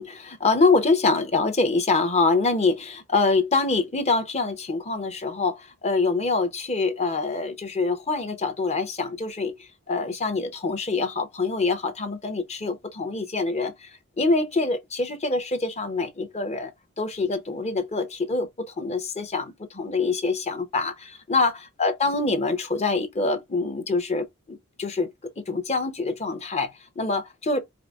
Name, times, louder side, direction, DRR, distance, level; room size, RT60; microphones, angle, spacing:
voice 1, 0.0-9.6 9.9-25.1 25.4-27.6, left 3 dB, 30° left, 0.8 m, -25 dB
4.8 x 2.0 x 3.5 m
head